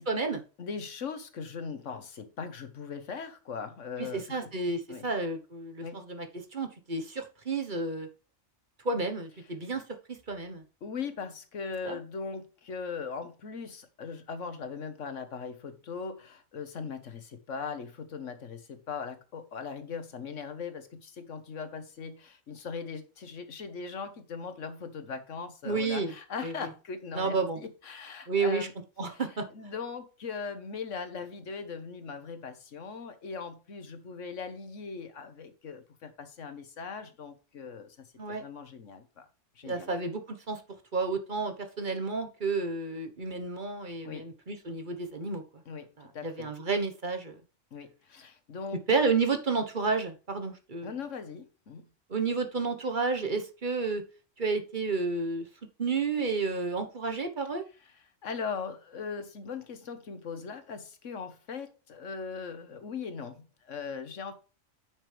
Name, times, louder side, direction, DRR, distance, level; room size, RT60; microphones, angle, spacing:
voice 1, 0.1-0.4 4.0-6.3 6.5-8.1 8.8-9.8 10.3-10.6 11.8-12.0 25.6-26.1 26.4-26.7 27.1-27.6 28.3-28.7 29.0-29.4 38.2-38.4 39.6-40.2 40.5-40.6 40.9-45.4 46.0-47.4 48.9-50.9 52.1-54.0 54.4-55.4 55.8-57.6, right 4 dB, 40° right, 1.2 m, -31 dB
voice 2, 0.6-4.5 4.9-5.1 5.8-6.0 10.8-28.7 29.1-29.2 29.5-39.3 39.5-39.9 44.0-44.3 45.7-46.5 47.7-48.8 50.8-51.8 58.2-64.3, left 5 dB, 75° left, 1.6 m, -39 dB
9.1 x 6.6 x 3.3 m
omnidirectional pair, 1.3 m